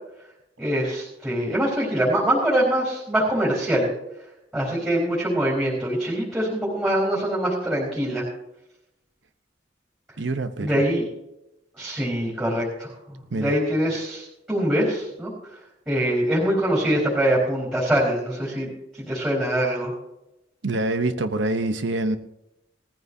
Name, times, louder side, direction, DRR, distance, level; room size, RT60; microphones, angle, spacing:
voice 1, 0.6-3.9 4.5-8.3 10.6-11.1 11.8-15.3 15.9-19.9, right 1 dB, 10° right, -5 dB, 4.1 m, -24 dB
voice 2, 10.2-10.8 13.3-13.6 20.6-22.2, right 2 dB, 90° right, 9 dB, 0.9 m, -25 dB
19.0 x 15.0 x 2.8 m, 0.90 s
head